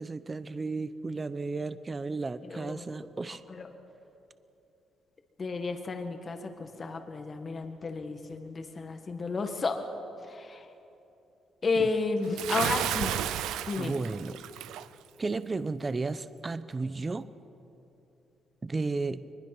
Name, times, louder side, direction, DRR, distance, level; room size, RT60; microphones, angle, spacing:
voice 1, 0.0-3.4 11.8-11.9 13.4-14.4 15.2-17.3 18.6-19.2, right 3 dB, 30° right, 13 dB, 0.7 m, -34 dB
voice 2, 2.4-2.8 3.5-3.7 5.4-9.8 10.3-10.7 11.6-13.1 13.7-14.0, left 3 dB, 40° left, 5 dB, 1.8 m, -32 dB
Bathtub (filling or washing) / Splash splatter, 12.4-14.9, right 12 dB, 90° right, 0.6 m, -32 dB
22.5 x 20.5 x 6.1 m, 2.9 s
cardioid pair, 90°, 0 cm